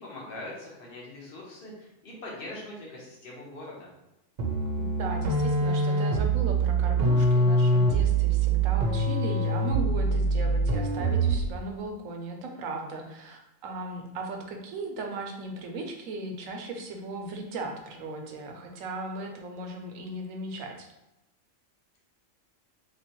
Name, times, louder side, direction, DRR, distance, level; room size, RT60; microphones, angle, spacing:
voice 1, 0.0-3.9, left 1 dB, 50° left, -3 dB, 1.1 m, -42 dB
sound 1, 4.4-11.5, right 2 dB, 60° right, 0.8 m, -24 dB
voice 2, 4.8-20.9, right 2 dB, 85° right, 3 dB, 1.0 m, -37 dB
3.2 x 3.0 x 2.9 m, 0.93 s
omnidirectional pair, 1.3 m